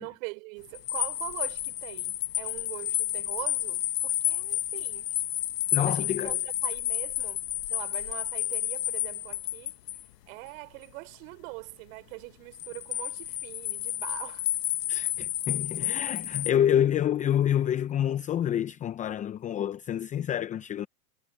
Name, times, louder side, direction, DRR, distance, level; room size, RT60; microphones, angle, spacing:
voice 1, 0.0-5.1 5.7-6.4 6.6-9.7 10.3-14.5 15.8-15.9, right 28 dB, 55° right, 3.6 m, -42 dB
sound 1, 0.7-10.0 12.5-16.5, left 13 dB, 85° left, 1.0 m, -31 dB
voice 2, 5.7-6.4 14.9-20.9, left 10 dB, 15° left, 0.6 m, -27 dB
hypercardioid pair, 125°, 47 cm